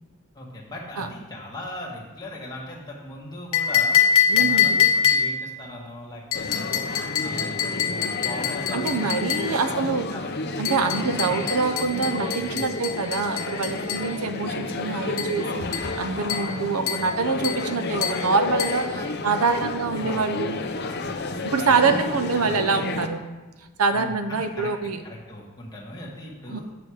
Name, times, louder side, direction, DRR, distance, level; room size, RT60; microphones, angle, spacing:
voice 1, 0.3-4.0 4.3-6.8 7.2-11.5 12.5-12.7 18.9-22.9 23.9-24.7 25.0-26.6, left 1 dB, 20° left, -4 dB, 1.7 m, -39 dB
sound 1, 3.5-5.5 6.3-9.5 10.6-14.1 15.2-15.4 15.7-16.0 16.3-16.6 16.9-17.1 17.4-17.7 18.0-18.3 18.6-18.8, left 8 dB, 75° left, 1.1 m, -24 dB
voice 2, 4.3-4.9 8.7-10.1 10.6-19.0 19.2-20.6 21.4-23.2 23.8-25.0 26.5-26.6, right 4 dB, 85° right, 9 dB, 0.7 m, -25 dB
sound 2, 6.3-23.1, left 3 dB, 45° left, 0.6 m, -31 dB
7.4 x 6.9 x 4.9 m, 1.2 s
head